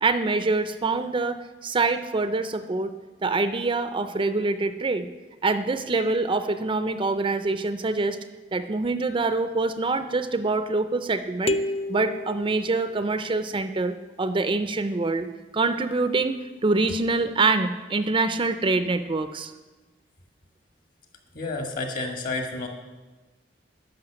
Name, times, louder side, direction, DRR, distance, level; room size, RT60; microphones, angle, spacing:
voice 1, 0.0-2.9 3.2-5.1 5.4-8.2 8.5-11.6 11.9-15.3 15.5-16.4 16.6-19.5, right 3 dB, 30° right, 10 dB, 0.4 m, -25 dB
sound 1, 11.5-13.4, left 1 dB, 35° left, 0.4 m, -30 dB
voice 2, 21.3-22.7, left 3 dB, 50° left, 3 dB, 1.9 m, -30 dB
11.5 x 5.5 x 8.9 m, 1.2 s
head